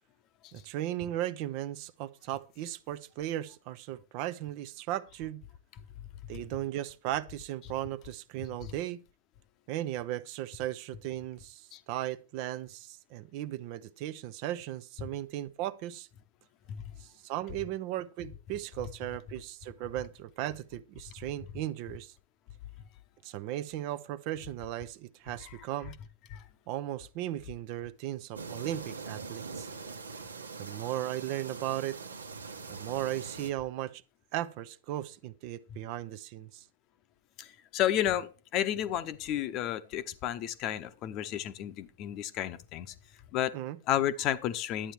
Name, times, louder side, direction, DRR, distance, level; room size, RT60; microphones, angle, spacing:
voice 1, 0.5-5.4 6.3-9.0 9.7-16.1 17.0-22.1 23.2-25.9 26.7-29.7 30.6-32.0 32.7-34.0 34.3-36.7 43.5-43.8, right 13 dB, 40° right, 0.6 m, -36 dB
sound 1, 28.3-33.5, right 4 dB, 75° right, 1.3 m, -42 dB
voice 2, 37.4-42.9 43.3-43.6 43.9-44.9, left 11 dB, 35° left, 0.9 m, -32 dB
11.5 x 9.0 x 4.5 m
figure-of-eight pair, 105°, 0 cm